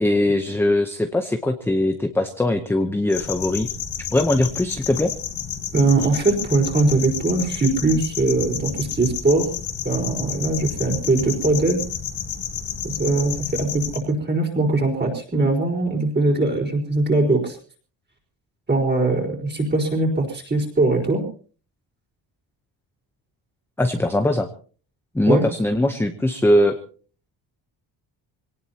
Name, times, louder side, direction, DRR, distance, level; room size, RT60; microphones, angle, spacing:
voice 1, 0.0-3.7 4.1-5.1 23.8-24.5 25.1-26.8, left 1 dB, 5° left, 6 dB, 0.8 m, -21 dB
sound 1, 3.1-14.0, left 9 dB, 80° left, 3.0 m, -31 dB
voice 2, 5.7-9.5 9.8-11.8 12.8-17.6 18.7-21.2 25.3-25.4, right 2 dB, 25° right, 0 dB, 4.5 m, -21 dB
25.0 x 18.5 x 2.9 m, 0.41 s
cardioid pair, 170°, 45 cm